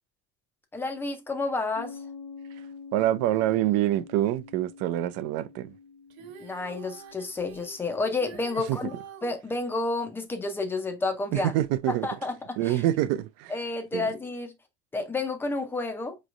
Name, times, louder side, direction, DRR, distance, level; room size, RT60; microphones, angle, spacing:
voice 1, 0.7-2.0 6.4-8.9 9.2-11.5 11.9-12.8 13.5-14.5 14.9-16.2, left 3 dB, 5° left, 0.5 m, -30 dB
Piano, 1.7-9.0, left 5 dB, 65° left, 0.8 m, -47 dB
voice 2, 2.9-5.7 8.7-8.8 11.3-12.1 12.6-13.5 13.9-14.1, right 13 dB, 50° right, 0.5 m, -26 dB
Female singing, 6.1-9.4 11.3-11.4, right 5 dB, 75° right, 0.9 m, -46 dB
5.1 x 3.1 x 2.4 m
cardioid pair, 170°, 32 cm